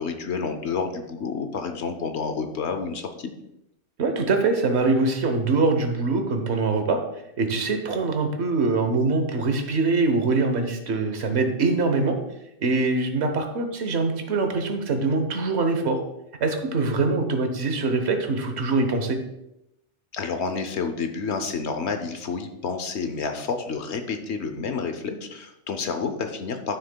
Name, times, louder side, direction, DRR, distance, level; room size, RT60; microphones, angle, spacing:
voice 1, 0.0-3.3 20.1-26.8, left 5 dB, 70° left, 7 dB, 1.0 m, -29 dB
voice 2, 4.0-7.0 7.4-12.1 12.6-16.0 16.4-19.2, right 3 dB, 65° right, 6 dB, 1.2 m, -23 dB
11.5 x 6.4 x 2.2 m, 0.84 s
omnidirectional pair, 1.2 m